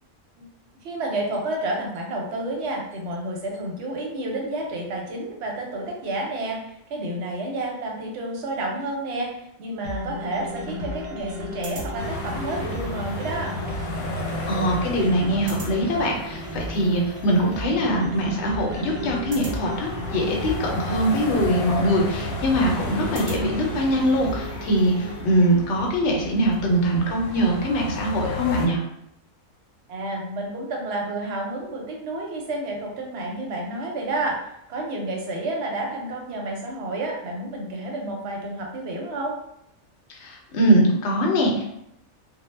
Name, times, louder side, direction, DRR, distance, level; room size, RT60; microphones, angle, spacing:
voice 1, 0.8-13.6 29.9-34.4 34.7-39.4, right 2 dB, 65° right, 0 dB, 0.8 m, -30 dB
sound 1, 9.8-25.2, equal, 80° right, 0.4 m, -35 dB
sound 2, 12.0-28.7, left 2 dB, 85° left, 1.0 m, -33 dB
voice 2, 14.5-28.8 40.1-41.7, equal, 65° left, 0 dB, 0.8 m, -22 dB
2.2 x 2.0 x 3.1 m, 0.77 s
omnidirectional pair, 1.4 m